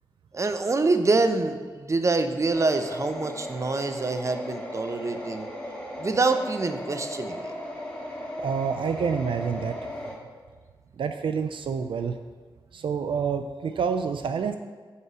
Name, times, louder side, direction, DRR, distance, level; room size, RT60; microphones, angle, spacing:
voice 1, 0.3-5.5 6.0-7.5, right 3 dB, 35° right, 8 dB, 0.6 m, -25 dB
sound 1, 2.5-10.1, left 1 dB, 15° left, 1.8 m, -37 dB
voice 2, 8.4-9.9 11.0-12.2 12.7-14.6, right 6 dB, 80° right, 8 dB, 0.3 m, -28 dB
5.5 x 4.7 x 6.1 m, 1.5 s
cardioid pair, 60°, 9 cm